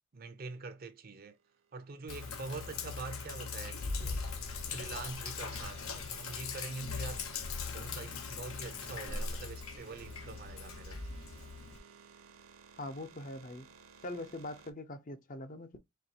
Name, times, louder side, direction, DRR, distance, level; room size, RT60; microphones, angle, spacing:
voice 1, 0.1-1.4 1.7-4.2 4.7-7.3 7.7-11.0, right 3 dB, 45° right, 0.5 m, -44 dB
sound 1, 1.2-14.7, right 6 dB, 75° right, 0.8 m, -56 dB
Sink (filling or washing), 2.1-11.8, left 5 dB, 80° left, 0.8 m, -40 dB
voice 2, 12.8-13.7 14.0-15.8, left 2 dB, 40° left, 0.5 m, -42 dB
4.4 x 2.8 x 2.8 m
head